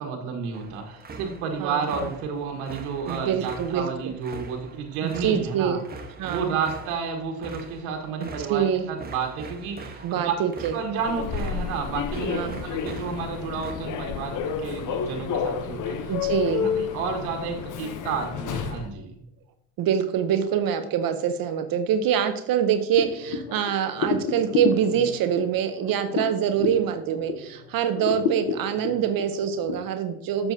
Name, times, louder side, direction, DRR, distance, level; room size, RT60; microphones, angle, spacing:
voice 1, 0.0-5.8 6.2-10.3 10.7-12.3 12.6-16.1 16.5-19.1, right 5 dB, 85° right, 2 dB, 1.4 m, -31 dB
sound 1, 0.5-13.7, right 3 dB, 20° right, 1.2 m, -42 dB
voice 2, 1.6-2.1 3.1-3.9 5.2-5.8 6.2-6.7 8.2-8.8 10.0-10.7 12.2-12.6 16.1-16.6 19.8-30.5, right 8 dB, 50° right, 9 dB, 0.7 m, -25 dB
Human voice / Subway metro underground, 10.9-18.9, left 6 dB, 45° left, 0.8 m, -30 dB
sound 2, 23.0-27.6 27.9-29.8, left 5 dB, 60° left, 1.2 m, -30 dB
6.8 x 6.8 x 2.7 m, 0.81 s
supercardioid pair, 90°, 44 cm